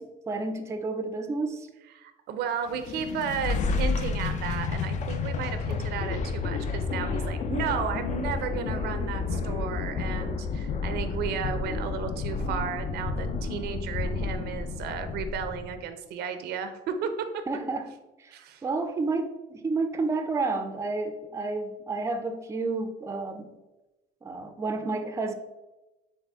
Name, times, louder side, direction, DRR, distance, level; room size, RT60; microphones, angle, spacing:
voice 1, 0.0-1.7 17.5-17.9 18.2-23.5 24.2-25.3, right 3 dB, 15° right, 7 dB, 0.4 m, -30 dB
voice 2, 2.0-17.4 18.3-18.6, right 7 dB, 75° right, 9 dB, 0.5 m, -33 dB
sound 1, 2.7-15.8, left 4 dB, 45° left, 0.5 m, -30 dB
4.2 x 3.7 x 3.4 m, 1.0 s
cardioid pair, 110°, 17 cm